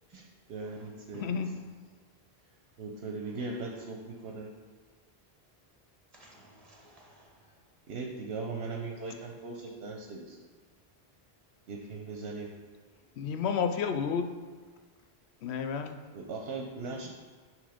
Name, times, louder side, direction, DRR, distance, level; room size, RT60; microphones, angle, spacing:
voice 1, 0.5-1.4 2.8-4.5 7.9-10.4 11.7-12.5 16.1-17.1, right 3 dB, 75° right, 1 dB, 1.0 m, -39 dB
voice 2, 1.1-1.5 13.2-14.3 15.4-16.0, left 6 dB, 85° left, 7 dB, 0.8 m, -31 dB
voice 3, 6.1-7.3 17.0-17.1, right 1 dB, 35° right, -2 dB, 1.5 m, -56 dB
8.9 x 3.2 x 5.0 m, 1.5 s
omnidirectional pair, 1.1 m